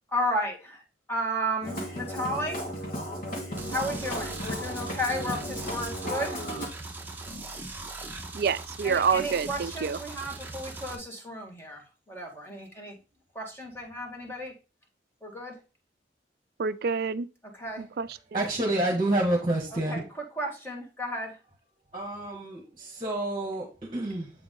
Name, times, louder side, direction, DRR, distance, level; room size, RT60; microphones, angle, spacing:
voice 1, 0.1-0.8 1.1-2.7 3.7-6.3 8.8-13.0 13.3-14.5 15.2-15.5 17.5-17.8 19.7-20.0 20.3-21.4, equal, 15° left, 1.8 m, -33 dB
Musical instrument, 1.6-6.7, equal, 55° left, 1.9 m, -35 dB
sound 1, 3.6-10.9, right 2 dB, 10° right, 0.9 m, -40 dB
voice 2, 8.3-10.0 16.6-17.3 17.8-18.5, right 6 dB, 60° right, 0.4 m, -28 dB
voice 3, 18.3-20.0 21.9-24.3, right 1 dB, 25° right, 1.6 m, -28 dB
7.9 x 3.7 x 3.8 m
head